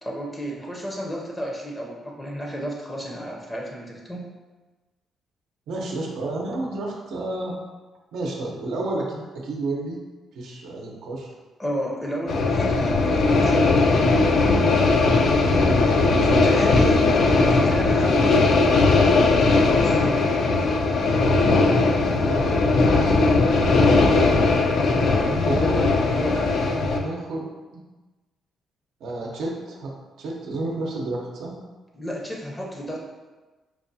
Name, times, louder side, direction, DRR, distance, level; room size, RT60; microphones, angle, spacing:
voice 1, 0.0-4.3 11.6-14.1 16.2-17.1 17.5-18.5 19.4-20.0 24.8-25.5 25.7-26.5 31.9-33.0, equal, 15° left, -2 dB, 0.6 m, -31 dB
voice 2, 5.7-7.6 8.1-10.0 10.3-11.3 15.6-16.7 22.1-24.0 25.5-25.8 26.1-26.3 26.7-27.5 29.0-31.5, right 2 dB, 80° right, -2 dB, 0.7 m, -31 dB
sound 1, 12.3-27.0, left 3 dB, 60° left, 0.4 m, -19 dB
4.7 x 2.3 x 2.7 m, 1.2 s
cardioid pair, 90°, 0 cm